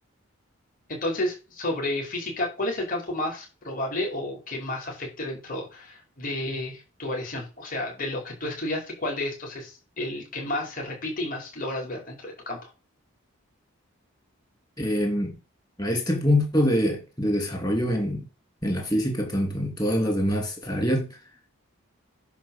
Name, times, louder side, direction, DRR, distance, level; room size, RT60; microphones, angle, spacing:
voice 1, 0.9-12.7, left 1 dB, 40° left, 5.1 m, -31 dB
voice 2, 14.8-15.3 15.8-18.3 18.6-21.2, equal, 20° left, 2.7 m, -25 dB
10.5 x 4.4 x 7.3 m
head